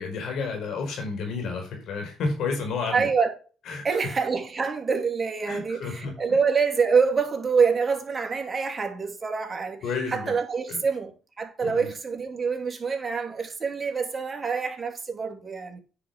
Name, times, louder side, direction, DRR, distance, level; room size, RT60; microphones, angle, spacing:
voice 1, 0.0-3.1 3.7-4.0 5.5-6.1 9.8-10.4 10.7-10.8 11.6-11.9, left 4 dB, 75° left, 4.8 m, -31 dB
voice 2, 2.9-3.3 3.8-9.8 10.1-15.8, right 5 dB, 35° right, 2.6 m, -26 dB
9.6 x 5.3 x 6.0 m
cardioid pair, 85°, 0 cm